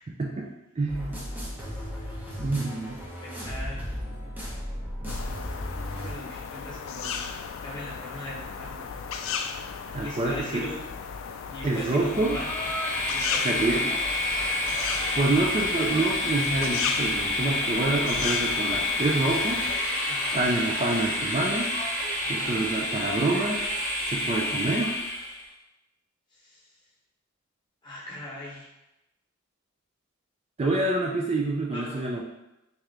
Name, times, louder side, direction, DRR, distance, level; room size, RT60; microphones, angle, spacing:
voice 1, 0.8-1.2 2.4-3.0 9.9-10.6 11.6-12.4 13.4-14.0 15.1-19.7 20.3-21.8 22.3-23.6 24.1-25.0 30.6-32.2, right 2 dB, 30° right, -2 dB, 0.4 m, -27 dB
sound 1, 0.9-6.1, equal, 10° right, 0.8 m, -35 dB
voice 2, 3.2-4.0 6.0-7.2 7.6-8.9 10.0-10.8 11.5-12.5 13.1-14.0 20.0-20.4 22.2-22.7 24.4-24.5 26.4-26.6 27.8-28.7 31.7-32.1, left 1 dB, 20° left, -6 dB, 1.1 m, -39 dB
sound 2, 5.1-19.8, left 6 dB, 65° left, 0.3 m, -35 dB
Train, 11.9-25.4, left 1 dB, 40° left, 1.0 m, -28 dB
3.6 x 2.8 x 3.3 m, 0.92 s
head